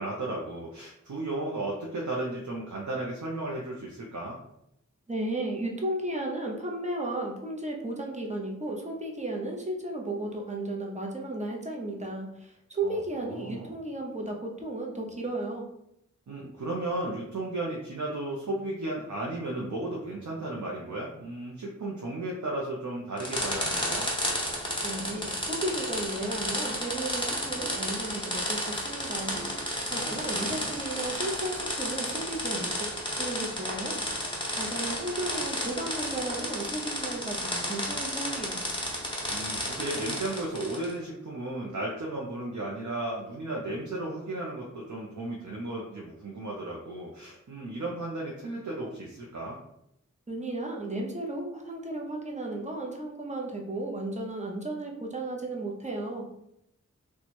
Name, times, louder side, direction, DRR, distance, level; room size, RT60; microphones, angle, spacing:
voice 1, 0.0-4.4 12.8-13.7 16.3-24.1 29.9-30.7 39.3-49.6, right 2 dB, 75° right, -3 dB, 0.6 m, -34 dB
voice 2, 5.1-15.6 24.8-38.6 50.3-56.3, right 2 dB, 25° right, 0 dB, 0.8 m, -34 dB
sound 1, 23.2-40.9, equal, 15° left, 1.0 m, -32 dB
2.9 x 2.3 x 4.2 m, 0.79 s
wide cardioid pair, 50°, 30 cm